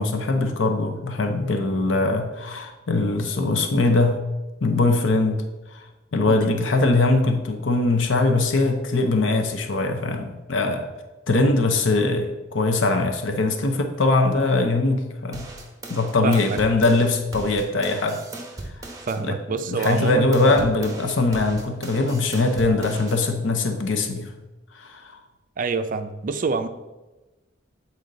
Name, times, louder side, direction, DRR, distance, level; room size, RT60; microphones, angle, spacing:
voice 1, 0.0-4.2 4.6-5.4 5.7-5.8 6.1-10.9 11.3-15.5 15.9-18.2 19.2-24.3 24.7-25.2, left 2 dB, 80° left, 5 dB, 0.7 m, -22 dB
voice 2, 6.2-6.7 16.2-16.6 19.1-20.7 25.6-26.7, right 4 dB, 45° right, 9 dB, 0.4 m, -27 dB
sound 1, 15.3-19.2 19.6-23.2, right 2 dB, 20° right, 1.0 m, -38 dB
8.1 x 4.3 x 3.8 m, 1.1 s
head